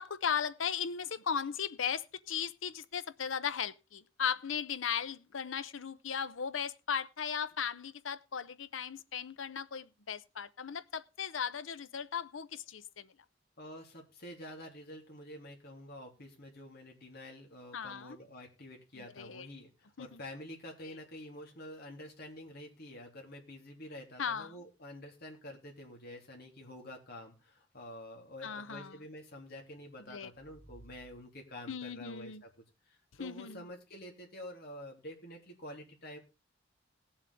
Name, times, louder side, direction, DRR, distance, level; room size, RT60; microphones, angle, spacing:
voice 1, 0.0-13.1 17.7-18.2 19.0-19.5 20.0-20.2 24.2-24.6 28.4-29.0 30.1-30.3 31.7-32.4 33.2-33.6, left 7 dB, 90° left, 0.7 m, -37 dB
voice 2, 13.6-32.5 32.9-36.2, left 1 dB, 55° left, 3.1 m, -48 dB
sound 1, 30.0-32.0, right 1 dB, 15° right, 5.5 m, -60 dB
18.5 x 7.3 x 3.6 m
head